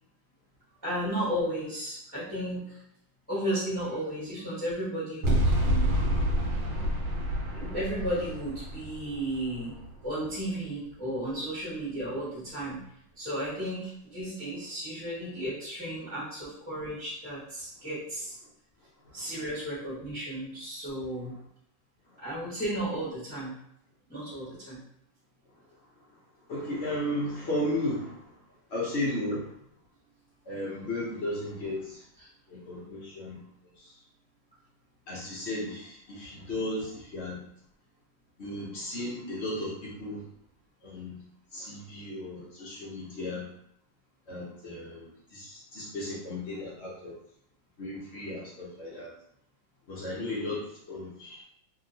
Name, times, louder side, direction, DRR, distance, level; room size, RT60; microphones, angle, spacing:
voice 1, 0.8-2.8 3.3-5.9 7.5-9.7 10.0-12.8 13.2-18.4 19.1-21.3 22.2-23.5 24.1-24.8 32.2-32.3, right 1 dB, 5° left, -10 dB, 0.9 m, -34 dB
sound 1, 5.2-10.4, equal, 80° right, 1.4 m, -28 dB
voice 2, 26.5-28.3 28.7-29.5 30.5-32.0 32.5-33.4 33.8-33.9 35.1-37.4 38.4-40.2 40.8-41.2 41.5-43.4 44.3-47.1 47.8-49.1 49.9-51.4, left 1 dB, 65° left, -6 dB, 0.6 m, -35 dB
2.8 x 2.8 x 2.6 m, 0.72 s
omnidirectional pair, 2.0 m